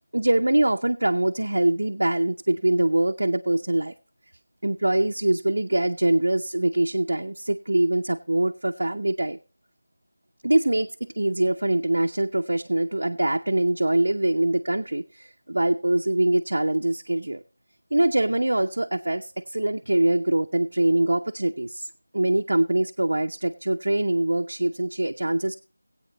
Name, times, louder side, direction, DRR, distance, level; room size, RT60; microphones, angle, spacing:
voice 1, 0.1-3.9 4.6-9.4 10.4-17.4 17.9-21.9 22.1-25.6, right 1 dB, 80° right, 3 dB, 0.6 m, -23 dB
19.5 x 8.6 x 2.9 m, 0.35 s
figure-of-eight pair, 175°, 0 cm